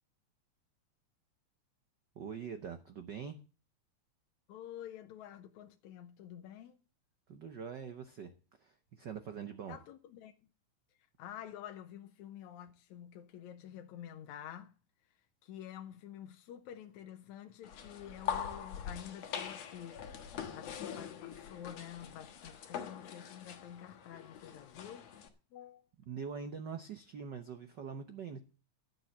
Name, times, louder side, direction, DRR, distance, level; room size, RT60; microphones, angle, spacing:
voice 1, 2.1-3.4 7.3-8.3 8.6-9.8 26.1-28.4, right 6 dB, 75° right, 1.0 m, -43 dB
voice 2, 4.5-6.8 9.7-10.3 11.2-14.7 15.4-20.0 20.5-25.1 25.5-25.8, left 10 dB, 80° left, 2.2 m, -49 dB
sound 1, 17.6-25.3, left 8 dB, 65° left, 2.5 m, -43 dB
12.0 x 7.7 x 7.2 m
omnidirectional pair, 3.3 m